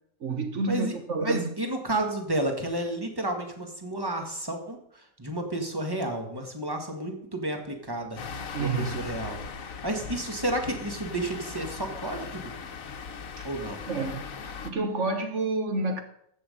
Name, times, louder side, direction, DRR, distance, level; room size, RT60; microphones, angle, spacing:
voice 1, 0.2-1.5 8.5-9.0 13.4-13.5 13.9-16.0, right 3 dB, 60° right, 1.4 m, -29 dB
voice 2, 1.2-8.2 8.6-12.5 13.4-13.8, right 1 dB, 15° right, 1.8 m, -31 dB
sound 1, 8.2-14.7, left 5 dB, 75° left, 1.4 m, -39 dB
14.0 x 8.1 x 5.4 m
omnidirectional pair, 1.5 m